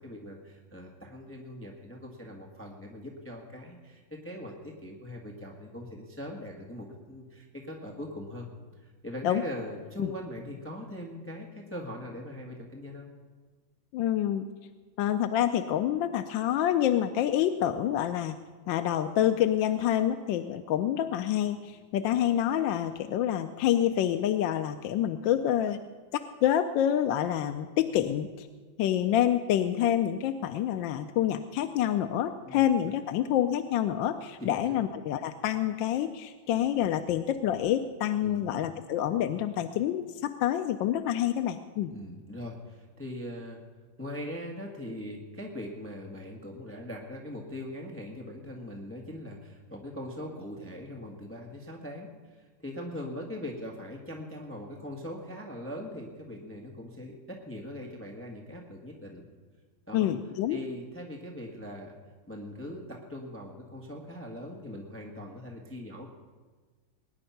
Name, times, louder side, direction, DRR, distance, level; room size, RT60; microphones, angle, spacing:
voice 1, 0.0-8.5 8.8-13.1 32.4-32.6 34.4-34.8 38.2-38.5 41.9-43.6 44.0-59.2 59.9-60.1 60.5-61.9 62.3-66.1, left 1 dB, 5° left, 0 dB, 1.4 m, -41 dB
voice 2, 13.9-14.5 15.0-18.3 18.7-25.8 26.4-28.5 28.8-41.9 59.9-60.6, left 11 dB, 75° left, 9 dB, 1.3 m, -27 dB
20.5 x 10.0 x 5.8 m, 1.5 s
omnidirectional pair, 2.2 m